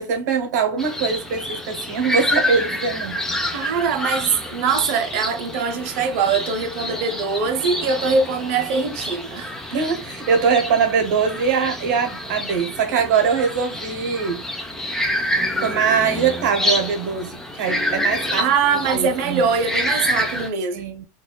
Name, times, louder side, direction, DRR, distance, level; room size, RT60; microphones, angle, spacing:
voice 1, 0.0-3.2 9.7-14.4 15.6-19.4 20.7-21.0, right 6 dB, 70° right, 0.9 m, -22 dB
sound 1, 0.8-20.5, left 1 dB, 5° left, 0.3 m, -28 dB
voice 2, 3.5-9.7 18.4-20.8, right 5 dB, 45° right, 0.7 m, -22 dB
4.0 x 2.3 x 2.2 m
supercardioid pair, 165°, 10 cm